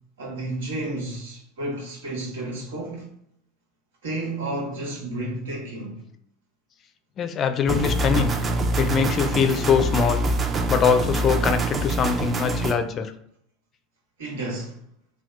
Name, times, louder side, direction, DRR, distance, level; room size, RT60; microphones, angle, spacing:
voice 1, 0.2-3.1 4.0-6.0 10.5-10.7 14.2-14.7, right 2 dB, 85° right, 1.3 m, -31 dB
voice 2, 7.2-8.4 8.8-10.2 10.7-13.1, left 7 dB, 40° left, 0.4 m, -23 dB
sound 1, 7.7-12.7, right 2 dB, 30° right, 0.5 m, -25 dB
2.8 x 2.2 x 3.3 m
hypercardioid pair, 100°, 0 cm